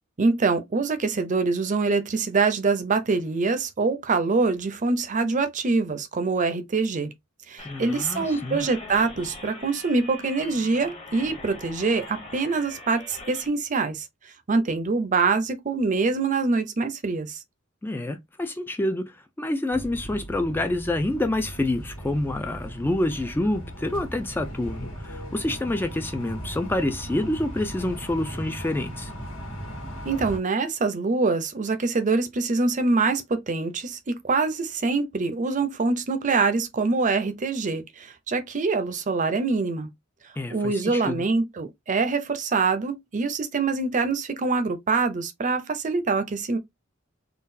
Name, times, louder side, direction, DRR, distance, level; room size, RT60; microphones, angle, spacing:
voice 1, 0.2-7.1 7.5-14.1 14.5-17.4 30.0-34.0 34.2-39.9 40.5-46.6, right 4 dB, 40° right, 0.6 m, -24 dB
sound 1, 7.6-13.5, left 2 dB, 30° left, 1.0 m, -42 dB
voice 2, 7.6-8.7 17.8-29.1 40.4-41.3, left 1 dB, 10° left, 0.3 m, -28 dB
sound 2, 19.7-30.4, right 1 dB, 90° left, 1.6 m, -37 dB
3.8 x 2.3 x 2.6 m
head